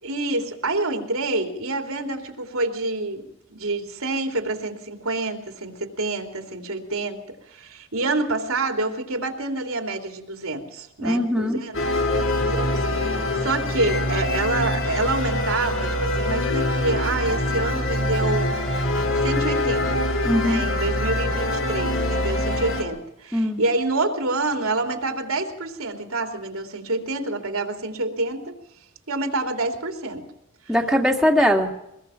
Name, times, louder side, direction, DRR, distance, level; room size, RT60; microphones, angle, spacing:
voice 1, 0.0-11.8 12.1-18.7 19.2-20.0 20.4-28.5 29.1-30.3 30.7-30.8, right 2 dB, 90° right, 4 dB, 3.1 m, -27 dB
voice 2, 11.0-11.6 20.2-20.6 23.3-23.6 30.7-31.8, equal, ahead, 0 dB, 2.1 m, -21 dB
sound 1, 11.7-22.8, left 1 dB, 70° left, 4.0 m, -24 dB
23.5 x 21.0 x 5.8 m, 0.84 s
head